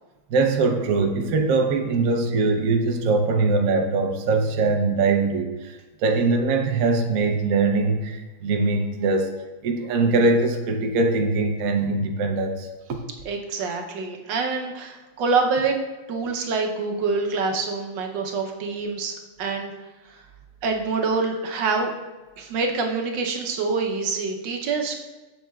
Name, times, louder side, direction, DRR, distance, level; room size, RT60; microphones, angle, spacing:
voice 1, 0.3-9.3 9.6-12.7, right 3 dB, 80° right, 3 dB, 0.7 m, -22 dB
voice 2, 13.2-15.8 16.1-19.7 20.0-20.2 20.6-21.9 22.4-25.0, right 4 dB, 65° right, 2 dB, 1.3 m, -26 dB
7.4 x 7.3 x 2.3 m, 1.2 s
omnidirectional pair, 2.4 m